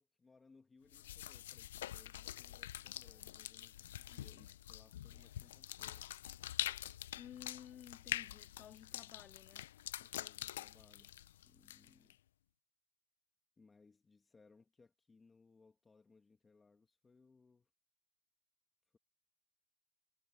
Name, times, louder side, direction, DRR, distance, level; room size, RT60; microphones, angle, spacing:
voice 1, 0.0-6.1 10.0-11.2 11.4-12.2 13.6-17.7, left 4 dB, 10° left, 1.9 m, -67 dB
sound 1, 0.9-12.1, left 13 dB, 80° left, 0.7 m, -45 dB
voice 2, 7.2-9.7, left 10 dB, 30° left, 2.5 m, -55 dB
supercardioid pair, 140°, 0 cm